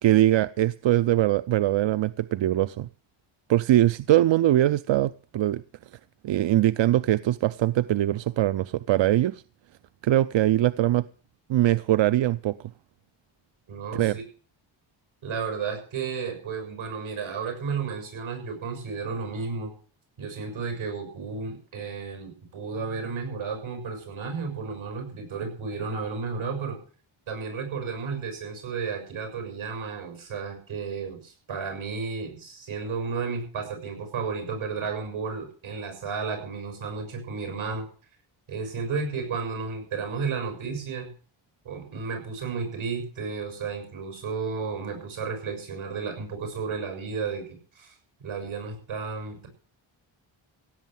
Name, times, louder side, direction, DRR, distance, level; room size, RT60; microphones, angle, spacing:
voice 1, 0.0-2.9 3.5-5.6 6.2-9.4 10.0-11.0 11.5-12.6 13.9-14.2, right 13 dB, 70° right, 16 dB, 0.6 m, -22 dB
voice 2, 13.7-14.2 15.2-19.7 20.2-26.8 27.3-37.9 38.5-41.1 41.6-47.9 48.2-49.5, right 5 dB, 85° right, 5 dB, 6.8 m, -33 dB
16.5 x 8.4 x 7.6 m, 0.41 s
wide cardioid pair, 110°, 47 cm